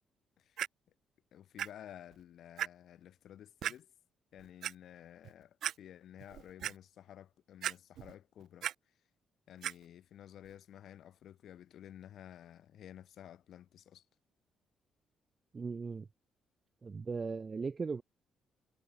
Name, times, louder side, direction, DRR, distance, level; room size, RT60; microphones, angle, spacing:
Clock, 0.6-0.7 1.6-1.7 2.1-2.2 2.6-2.7 3.6-3.8 4.4-4.7 5.2-5.3 5.6-5.7 6.2-6.7 7.6-8.1 8.4-8.7 9.6-9.7 10.5-10.6, right 11 dB, 70° right, 0.8 m, -36 dB
voice 1, 1.3-3.9 4.3-8.9 9.5-14.1, left 10 dB, 70° left, 5.3 m, -53 dB
voice 2, 15.5-16.1 16.8-18.0, right 4 dB, 35° right, 1.1 m, -38 dB
cardioid pair, 90°, 0 cm